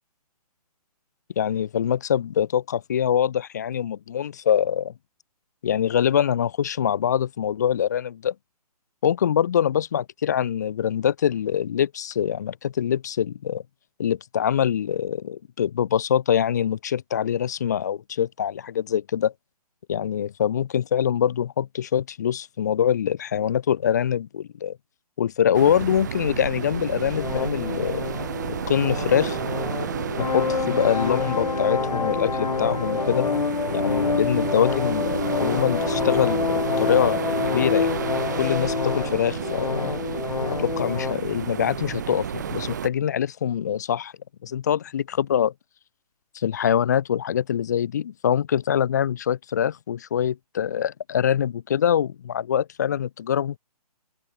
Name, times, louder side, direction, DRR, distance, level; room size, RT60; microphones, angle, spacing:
voice 1, 1.4-4.9 5.6-8.3 9.0-13.6 14.0-19.3 19.9-24.8 25.2-28.1 28.7-29.4 30.2-33.3 33.7-37.3 37.5-37.9 38.4-39.9 40.5-44.1 44.4-45.5 46.3-53.6, left 9 dB, 25° left, 0.6 m, -24 dB
sound 1, 25.5-42.9, right 9 dB, 30° right, 0.6 m, -31 dB
sound 2, 27.1-41.1, left 5 dB, 80° left, 2.6 m, -27 dB
open air
hypercardioid pair, 170°, 20 cm